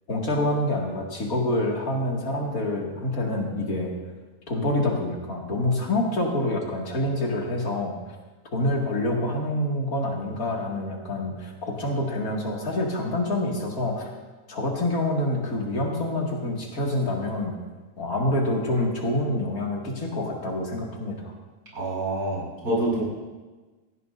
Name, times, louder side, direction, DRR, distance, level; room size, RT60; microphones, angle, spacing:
voice 1, 0.1-3.9 4.5-7.9 8.5-14.1 14.5-17.5 18.0-21.3, left 1 dB, 65° left, -1 dB, 2.7 m, -27 dB
voice 2, 21.7-23.0, right 1 dB, 70° right, -5 dB, 6.2 m, -27 dB
18.0 x 15.5 x 2.6 m, 1.3 s
omnidirectional pair, 1.7 m